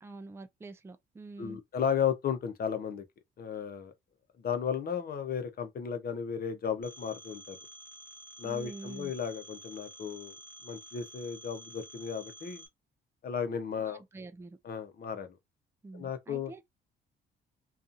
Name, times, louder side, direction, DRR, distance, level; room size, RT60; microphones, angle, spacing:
voice 1, 0.0-1.6 8.4-9.1 13.8-14.6 15.8-16.6, right 3 dB, 10° right, 0.4 m, -46 dB
voice 2, 1.4-3.0 3.4-3.9 4.4-7.6 8.4-10.4 10.6-12.6 13.2-14.0 14.6-15.4 15.9-16.5, left 7 dB, 50° left, 0.7 m, -34 dB
Telephone, 6.8-12.7, right 1 dB, 10° left, 1.1 m, -50 dB
2.6 x 2.4 x 2.5 m
cardioid pair, 90°, 20 cm